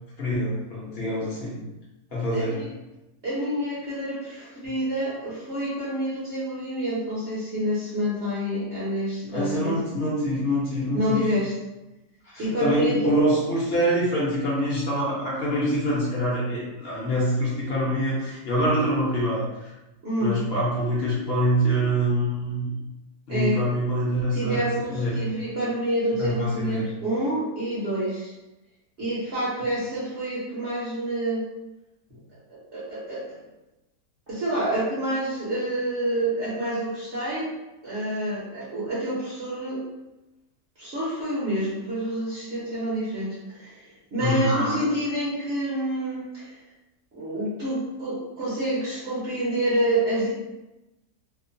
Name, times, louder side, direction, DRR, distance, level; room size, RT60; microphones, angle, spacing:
voice 1, 0.2-1.6 2.1-2.5 9.2-11.3 12.2-19.7 20.2-22.7 23.3-25.2 26.2-26.8 44.2-44.5, equal, 50° left, -6 dB, 0.8 m, -25 dB
voice 2, 2.3-2.7 3.2-9.7 10.9-11.5 12.4-13.1 20.0-20.4 23.3-23.6 24.3-28.3 29.0-31.4 32.5-33.4 34.3-37.5 37.8-39.8 40.8-43.8 44.1-46.5 47.1-50.3, right 1 dB, 55° right, -9 dB, 0.9 m, -28 dB
2.9 x 2.1 x 2.6 m, 1.0 s
omnidirectional pair, 1.7 m